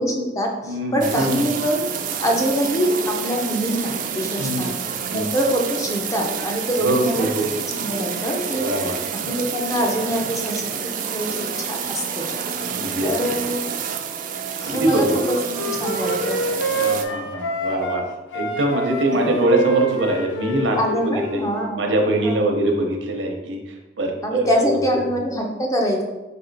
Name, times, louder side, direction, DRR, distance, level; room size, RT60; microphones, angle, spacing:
voice 1, 0.0-1.9 2.2-4.7 5.1-7.3 7.6-8.6 9.1-12.3 13.0-13.7 14.6-16.4 19.3-19.4 20.8-22.5 24.2-26.0, equal, 15° left, 0 dB, 0.6 m, -24 dB
voice 2, 0.7-1.4 4.4-4.7 5.1-5.3 6.8-7.5 8.5-9.0 12.7-13.1 14.6-15.1 16.8-18.0 18.3-21.4 21.7-23.6 24.0-25.0, right 1 dB, 85° right, 2 dB, 0.7 m, -23 dB
sound 1, 1.0-17.1, right 7 dB, 45° right, 0.4 m, -29 dB
Wind instrument woodwind instrument, 15.1-18.0 18.3-21.7, right 2 dB, 75° left, 0.6 m, -26 dB
4.3 x 2.8 x 3.9 m, 1.1 s
head